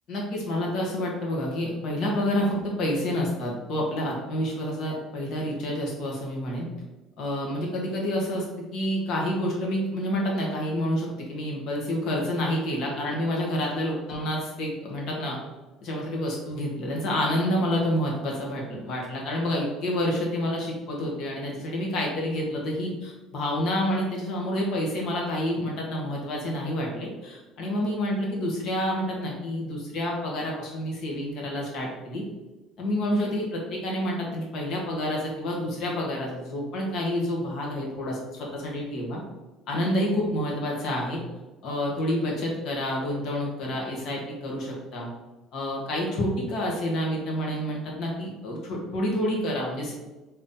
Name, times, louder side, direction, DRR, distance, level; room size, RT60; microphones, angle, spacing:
voice 1, 0.1-6.7 7.2-8.4 8.7-15.4 15.8-32.2 32.8-39.2 39.7-41.2 41.6-45.1 45.5-49.9, left 1 dB, 55° left, -2 dB, 1.3 m, -28 dB
3.7 x 3.1 x 4.1 m, 1.1 s
cardioid pair, 150°, 0 cm